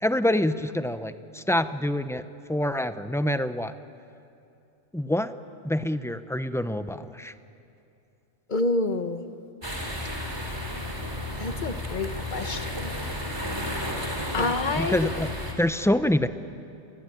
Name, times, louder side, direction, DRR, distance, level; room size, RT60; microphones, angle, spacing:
voice 1, 0.0-2.2 2.5-3.7 4.9-5.3 5.6-7.3 14.4-14.5 14.8-15.3 15.6-16.3, left 1 dB, 5° left, 11 dB, 0.6 m, -26 dB
voice 2, 8.5-9.2 11.4-12.9 14.3-15.1, left 2 dB, 45° left, 9 dB, 1.3 m, -28 dB
sound 1, 9.6-15.5, left 1 dB, 20° right, 3.6 m, -32 dB
29.0 x 21.5 x 9.2 m, 2.6 s
omnidirectional pair, 1.2 m